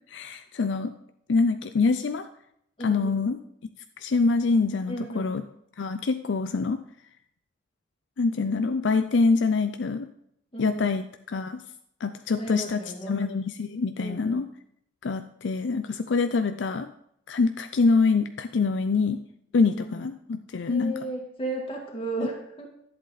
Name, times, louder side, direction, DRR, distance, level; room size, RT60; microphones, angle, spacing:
voice 1, 0.1-0.9 1.3-2.3 2.8-3.4 4.0-5.4 5.8-6.8 8.2-10.1 10.6-11.6 12.0-14.5 15.0-16.9 17.3-19.2 19.5-20.9, left 4 dB, 85° left, 9 dB, 0.5 m, -25 dB
voice 2, 2.8-3.2 4.9-5.4 10.5-10.9 12.4-13.2 14.0-14.4 19.8-20.0 20.7-22.7, right 1 dB, 30° left, -1 dB, 2.1 m, -34 dB
11.5 x 8.0 x 4.1 m, 0.73 s
head